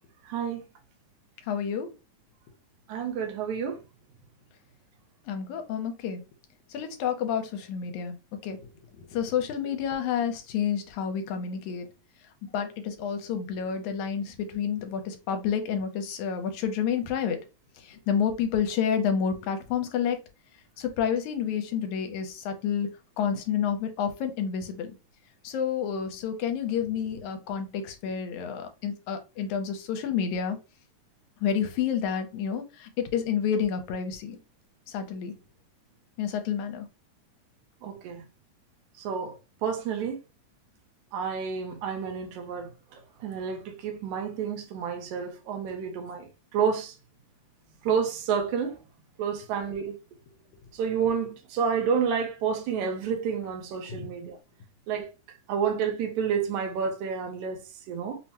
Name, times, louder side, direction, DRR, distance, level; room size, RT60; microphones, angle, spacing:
voice 1, 0.3-0.6 2.9-3.8 37.8-38.2 39.0-39.4 39.6-40.2 41.1-47.0 47.8-48.8 49.2-50.0 50.7-54.4 54.9-55.1 55.5-58.2, right 6 dB, 80° right, 2.2 m, -30 dB
voice 2, 1.5-1.9 5.3-6.2 6.7-8.2 8.4-8.6 9.0-11.9 12.4-17.4 17.8-20.2 20.8-22.9 23.2-24.9 25.4-30.6 31.4-34.4 34.9-35.3 36.2-36.9 53.9-54.0, left 7 dB, 80° left, 2.0 m, -29 dB
5.6 x 2.1 x 2.9 m
omnidirectional pair, 3.5 m